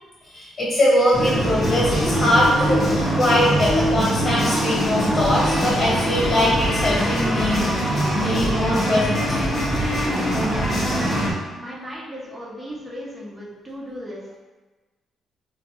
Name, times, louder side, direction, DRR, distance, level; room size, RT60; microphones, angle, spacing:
voice 1, 0.3-9.7, left 1 dB, 45° left, -8 dB, 1.4 m, -22 dB
sound 1, 1.1-11.3, equal, 25° left, 0.9 m, -22 dB
voice 2, 10.3-14.4, equal, 10° right, -6 dB, 0.7 m, -36 dB
3.7 x 2.2 x 2.9 m, 1.2 s
cardioid pair, 90°, 0 cm